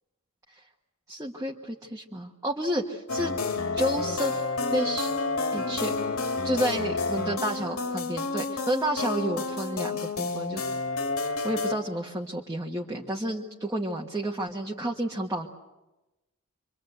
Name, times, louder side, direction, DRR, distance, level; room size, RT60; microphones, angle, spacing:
voice 1, 1.1-3.3 3.7-4.4 4.7-5.1 5.5-5.9 6.4-10.6 11.2-15.5, right 1 dB, 15° right, -1 dB, 1.5 m, -30 dB
sound 1, 3.1-11.7, left 3 dB, 80° left, 2.4 m, -30 dB
27.0 x 24.5 x 8.0 m, 1.0 s
head